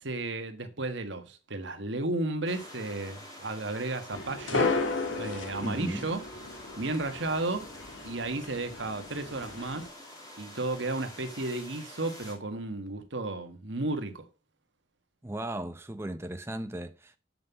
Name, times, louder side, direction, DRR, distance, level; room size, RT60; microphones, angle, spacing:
voice 1, 0.0-4.8 5.1-6.2 6.5-7.7 8.0-9.9 10.4-14.3, right 2 dB, 70° right, 1.5 m, -33 dB
sound 1, 2.5-12.4, left 1 dB, 20° left, 3.2 m, -48 dB
sound 2, 4.1-9.9, left 3 dB, 85° left, 1.7 m, -34 dB
voice 2, 5.6-6.1 15.2-17.2, right 1 dB, 15° right, 0.7 m, -36 dB
7.8 x 5.5 x 6.9 m
head